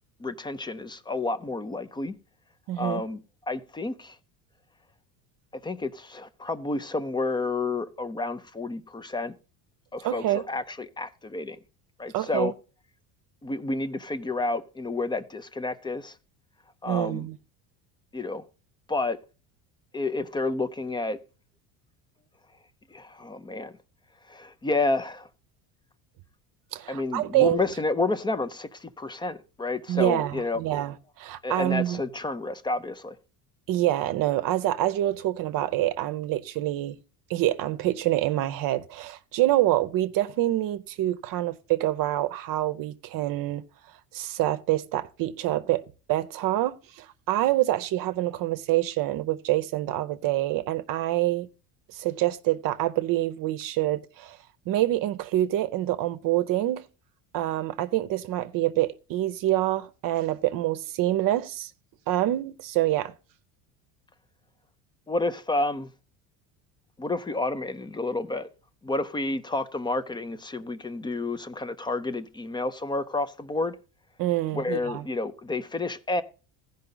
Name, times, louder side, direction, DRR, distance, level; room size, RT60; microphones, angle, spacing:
voice 1, 0.2-2.2 2.8-3.2 3.5-4.2 5.6-9.3 9.9-11.6 12.0-12.5 13.4-16.2 16.8-17.3 18.1-18.4 18.9-19.2 19.9-21.2 22.9-23.7 24.3-25.3 26.9-30.6 31.4-33.2 65.1-65.9 67.0-68.5 68.8-73.8 74.5-76.2, left 2 dB, 10° left, 0.4 m, -30 dB
voice 2, 2.7-3.0 10.0-10.4 12.1-12.5 16.9-17.4 26.7-27.6 29.9-32.0 33.7-37.0 37.3-43.6 44.1-45.8 46.1-51.5 51.9-54.4 54.7-56.9 57.3-61.7 62.1-63.1 74.2-75.0, right 14 dB, 55° right, 0.7 m, -26 dB
15.0 x 5.4 x 3.9 m
cardioid pair, 130°, 41 cm